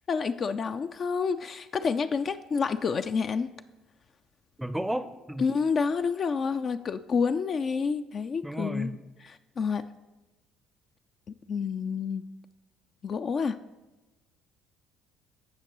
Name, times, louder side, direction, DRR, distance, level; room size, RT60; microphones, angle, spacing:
voice 1, 0.1-3.5 5.4-9.8 11.5-12.2 13.0-13.6, left 5 dB, 45° left, 9 dB, 0.4 m, -29 dB
voice 2, 4.6-5.5 8.4-9.0, equal, 5° right, 12 dB, 0.5 m, -32 dB
16.0 x 5.8 x 3.0 m, 1.1 s
hypercardioid pair, 65°, 0 cm